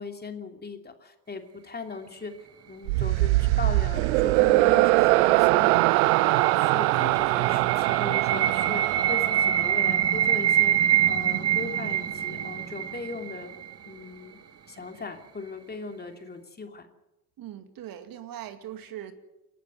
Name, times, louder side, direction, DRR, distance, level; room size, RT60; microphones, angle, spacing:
voice 1, 0.0-2.3 2.7-13.5 13.9-14.4 14.7-16.9, left 4 dB, 20° left, 5 dB, 3.0 m, -39 dB
sound 1, 2.9-10.2, right 21 dB, 65° right, 0.6 m, -22 dB
sound 2, 5.0-14.0, right 11 dB, 30° right, 1.6 m, -26 dB
voice 2, 17.4-19.1, right 11 dB, 50° right, 9 dB, 2.3 m, -40 dB
28.5 x 12.0 x 8.0 m, 0.98 s
hypercardioid pair, 65°, 45 cm